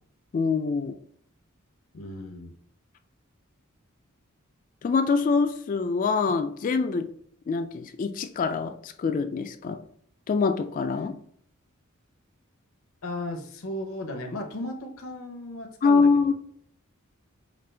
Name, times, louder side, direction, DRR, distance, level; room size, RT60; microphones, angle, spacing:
voice 1, 0.3-0.9 4.8-7.1 7.5-9.8 10.3-11.2 15.8-16.3, left 4 dB, 40° left, 8 dB, 0.3 m, -24 dB
voice 2, 1.9-2.5 11.0-11.1 13.0-16.3, left 1 dB, 80° left, 4 dB, 0.8 m, -36 dB
5.2 x 2.4 x 3.3 m, 0.63 s
head